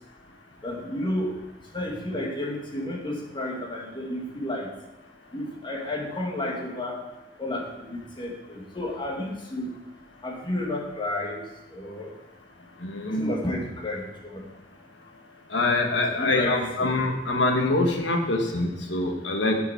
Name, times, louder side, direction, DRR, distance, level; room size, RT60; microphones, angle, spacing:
voice 1, 0.6-1.3 1.7-4.7 5.3-7.0 7.4-9.7 10.2-11.4 11.7-12.1 13.0-14.0 16.1-16.9, left 1 dB, 25° left, -1 dB, 1.6 m, -31 dB
voice 2, 12.8-13.3 15.5-19.6, left 2 dB, 85° left, 3 dB, 1.4 m, -24 dB
8.3 x 7.0 x 4.6 m, 1.0 s
head